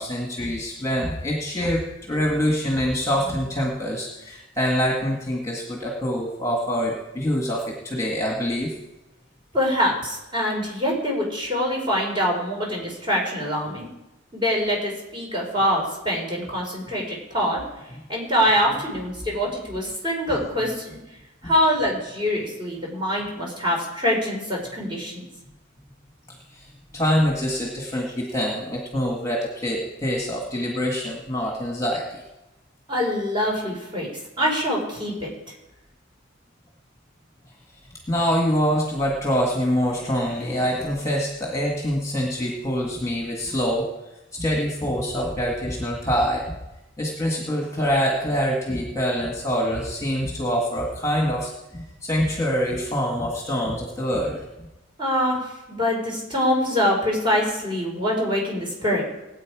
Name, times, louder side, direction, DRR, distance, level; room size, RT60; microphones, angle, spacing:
voice 1, 0.0-8.7 21.4-21.5 26.5-26.6 26.9-32.2 38.1-43.9 44.3-46.6 47.0-54.4, equal, 15° left, -1 dB, 1.9 m, -25 dB
voice 2, 9.5-13.9 14.3-17.6 18.1-21.0 21.4-25.2 32.9-34.1 34.4-35.3 55.0-55.4 55.7-59.0, equal, 25° right, -2 dB, 4.5 m, -24 dB
20.0 x 8.8 x 4.9 m, 0.94 s
head